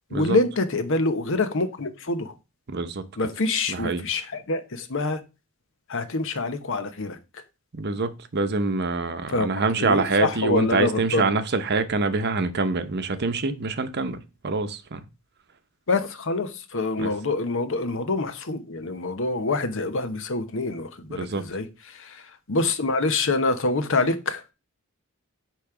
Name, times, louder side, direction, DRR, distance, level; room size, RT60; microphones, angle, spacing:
voice 1, 0.1-2.3 3.2-5.2 5.9-7.4 9.3-9.5 9.8-11.3 15.9-24.4, left 3 dB, 65° left, 0.9 m, -26 dB
voice 2, 2.7-3.0 3.7-4.0 7.7-14.2 14.4-15.0 17.0-17.1 21.1-21.4, right 3 dB, 50° right, 0.8 m, -25 dB
8.4 x 3.1 x 5.9 m
head